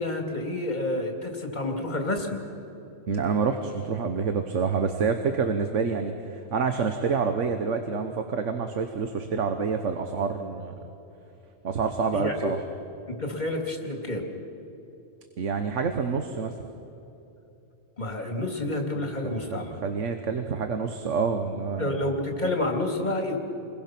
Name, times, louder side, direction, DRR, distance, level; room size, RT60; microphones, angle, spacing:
voice 1, 0.0-2.4 12.1-12.5 13.1-14.2 18.0-19.7 21.8-23.4, left 1 dB, 40° left, 2 dB, 2.7 m, -29 dB
voice 2, 3.1-10.7 11.6-12.6 15.4-16.5 19.0-22.0, right 5 dB, 80° right, 6 dB, 1.4 m, -27 dB
29.0 x 22.0 x 6.0 m, 2.9 s
omnidirectional pair, 1.2 m